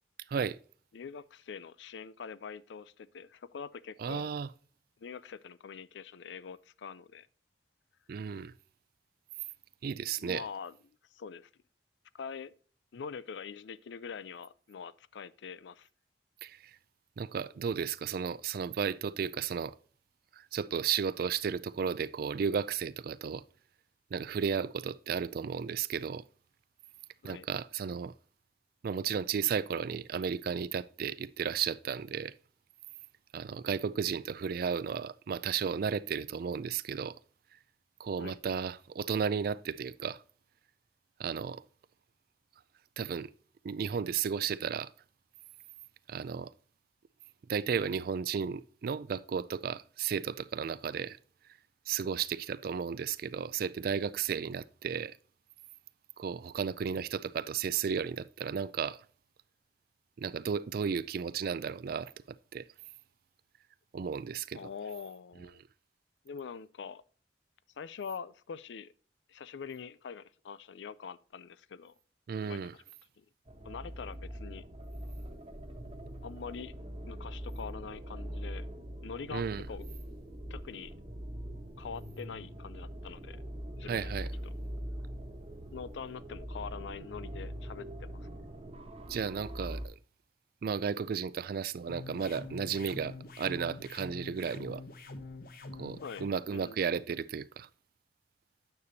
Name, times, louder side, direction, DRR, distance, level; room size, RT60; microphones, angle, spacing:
voice 1, 0.9-4.3 5.0-7.3 10.2-10.7 11.1-11.5 12.1-12.5 12.9-15.9 27.2-27.5 38.2-38.4 64.5-65.6 66.2-67.0 67.8-68.9 69.3-71.9 72.4-72.6 73.2-73.3 73.6-74.6 76.2-76.7 77.1-78.7 79.0-79.8 80.5-80.9 81.8-83.4 83.8-84.1 85.7-88.3 96.0-96.8, left 6 dB, 80° left, 0.4 m, -44 dB
voice 2, 4.0-4.5 8.1-8.5 9.8-10.4 16.4-16.8 17.2-19.7 20.3-23.4 24.1-26.2 27.2-28.1 28.8-32.3 33.3-37.2 38.0-40.2 41.2-41.6 43.0-43.3 43.6-44.9 46.1-46.5 47.5-51.2 51.9-55.1 56.2-59.0 60.2-62.6 63.9-64.7 72.3-72.7 79.3-79.6 83.9-84.3 89.1-90.0 90.6-94.8 95.8-97.7, right 6 dB, 55° right, 0.3 m, -34 dB
sound 1, 73.5-89.9, equal, 35° right, 1.2 m, -42 dB
sound 2, 91.9-96.3, left 2 dB, 55° left, 1.0 m, -45 dB
9.6 x 6.9 x 2.7 m
head